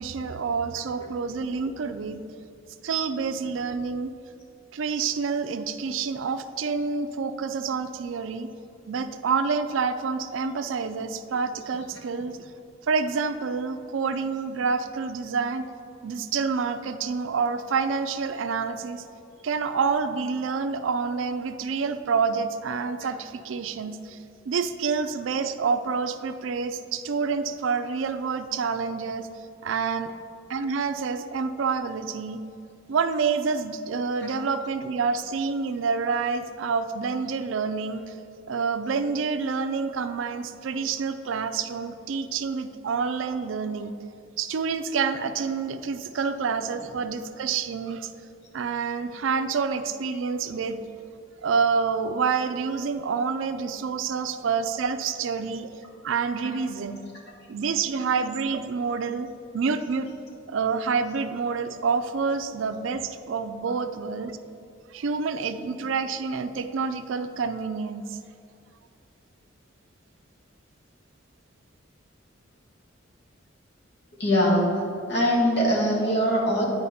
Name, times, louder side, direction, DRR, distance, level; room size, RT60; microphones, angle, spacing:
voice 1, 0.0-2.2 2.8-4.1 4.7-8.5 8.9-12.4 12.9-15.7 16.0-19.0 19.4-24.2 24.5-29.3 29.6-30.1 30.5-32.4 32.9-38.2 38.5-43.9 44.4-48.1 48.5-50.8 51.4-55.7 56.0-57.0 57.5-60.1 60.5-64.3 64.9-68.2, right 5 dB, 75° right, 11 dB, 0.4 m, -28 dB
voice 2, 74.2-74.8 75.1-76.7, equal, 60° left, -3 dB, 1.7 m, -22 dB
9.9 x 4.8 x 4.2 m, 2.5 s
head